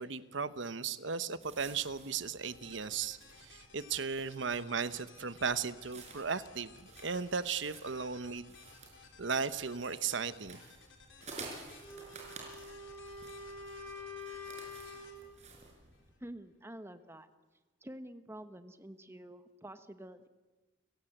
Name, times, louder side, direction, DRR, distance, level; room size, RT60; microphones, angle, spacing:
voice 1, 0.0-8.5 9.2-10.6, right 5 dB, 65° right, 13 dB, 1.0 m, -36 dB
sound 1, 1.4-16.1, right 3 dB, 35° right, 5.3 m, -53 dB
sound 2, 2.5-16.2, left 5 dB, 70° left, 3.7 m, -59 dB
Wind instrument woodwind instrument, 11.8-15.3, left 2 dB, 10° left, 5.5 m, -46 dB
voice 2, 16.2-17.3 17.8-20.3, right 1 dB, 15° right, 10 dB, 1.1 m, -48 dB
30.0 x 16.0 x 7.9 m, 1.2 s
head